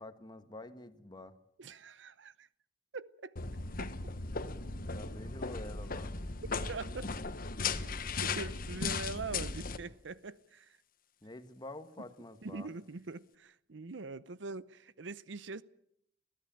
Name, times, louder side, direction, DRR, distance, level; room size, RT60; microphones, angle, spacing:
voice 1, 0.0-1.3 4.9-6.1 11.2-12.7, left 2 dB, 25° left, 1.4 m, -48 dB
voice 2, 1.6-2.5 2.9-3.3 3.8-3.9 6.7-7.1 8.2-10.8 12.0-12.1 12.4-15.6, right 3 dB, 75° right, 0.7 m, -43 dB
sound 1, 3.4-9.8, left 4 dB, 50° left, 1.2 m, -37 dB
22.0 x 15.5 x 9.0 m
head